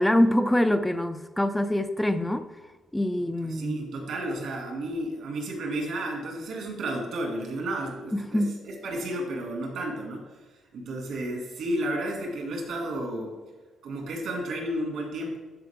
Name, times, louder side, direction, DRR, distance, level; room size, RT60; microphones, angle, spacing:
voice 1, 0.0-2.5 2.9-3.8 8.1-8.5, left 1 dB, 10° left, 9 dB, 0.4 m, -24 dB
voice 2, 3.4-10.2 10.7-13.4 13.8-15.4, right 1 dB, 75° right, 1 dB, 2.3 m, -32 dB
12.0 x 4.2 x 3.6 m, 1.3 s
cardioid pair, 90°, 0 cm